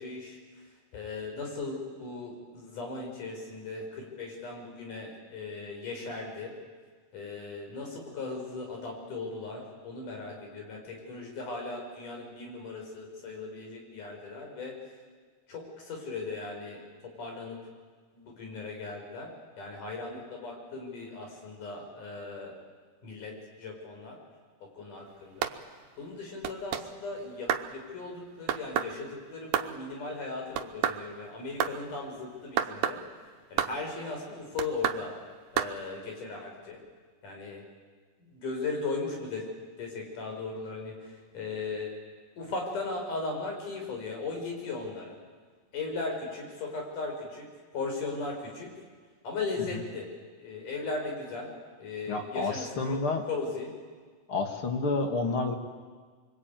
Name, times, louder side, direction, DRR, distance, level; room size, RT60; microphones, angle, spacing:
voice 1, 0.0-6.5 7.1-14.9 15.5-17.6 18.1-19.3 19.6-22.6 23.0-24.2 24.6-35.2 35.5-36.8 37.2-37.6 38.2-41.9 42.4-45.2 45.7-48.7 49.2-50.1 50.4-51.5 51.8-53.0 53.3-53.7, left 3 dB, 70° left, 1 dB, 6.4 m, -38 dB
sound 1, 25.4-25.6 26.4-26.9 27.5-27.7 28.5-28.9 29.5-29.7 30.5-31.0 31.6-31.8 32.6-33.0 33.6-33.8 34.6-35.0 35.6-35.7, right 10 dB, 90° right, 2.6 m, -29 dB
voice 2, 52.1-53.2 54.3-55.5, left 3 dB, 45° left, 4 dB, 2.5 m, -29 dB
24.5 x 24.0 x 9.2 m, 1.5 s
omnidirectional pair, 3.8 m